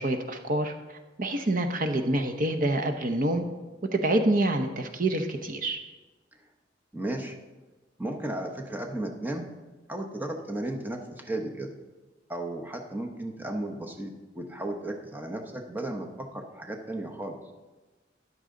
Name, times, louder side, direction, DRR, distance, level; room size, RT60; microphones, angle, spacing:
voice 1, 0.0-3.4 3.9-5.8, right 1 dB, 50° right, 6 dB, 0.8 m, -27 dB
voice 2, 6.9-7.4 8.0-9.5 9.9-11.7 12.3-17.4, right 1 dB, 10° right, 3 dB, 1.0 m, -34 dB
13.5 x 11.0 x 3.8 m, 1.2 s
head